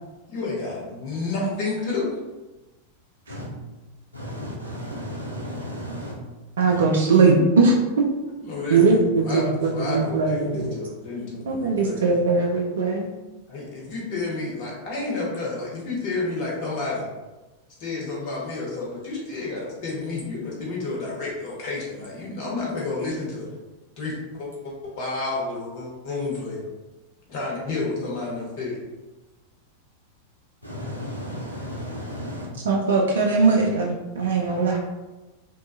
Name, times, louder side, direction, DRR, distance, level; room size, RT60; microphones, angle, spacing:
voice 1, 0.3-2.1 8.4-9.0 9.2-9.4 9.7-12.0 13.5-17.0 17.8-23.5 24.0-26.6 27.3-28.8, left 3 dB, 45° left, -4 dB, 0.9 m, -30 dB
voice 2, 4.1-6.1 6.7-6.8 30.6-32.5, equal, 90° left, -4 dB, 0.7 m, -34 dB
voice 3, 6.6-8.1 8.7-10.7 11.5-13.1 32.6-34.8, right 4 dB, 65° right, 0 dB, 0.3 m, -20 dB
2.6 x 2.3 x 2.5 m, 1.1 s
figure-of-eight pair, 90°, 0 cm